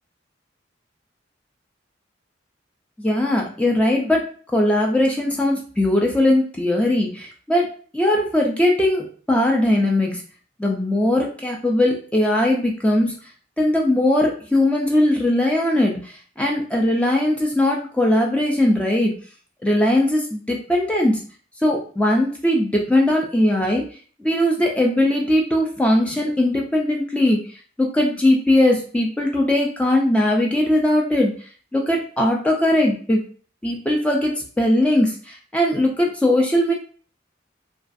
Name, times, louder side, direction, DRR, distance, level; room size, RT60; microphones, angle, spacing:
voice 1, 3.0-7.7 7.9-10.2 10.6-13.1 13.6-19.2 19.6-21.2 21.6-23.8 24.2-27.4 27.8-31.3 31.7-33.2 33.6-36.7, left 1 dB, 5° left, 0 dB, 0.3 m, -19 dB
2.3 x 2.3 x 2.5 m, 0.43 s
head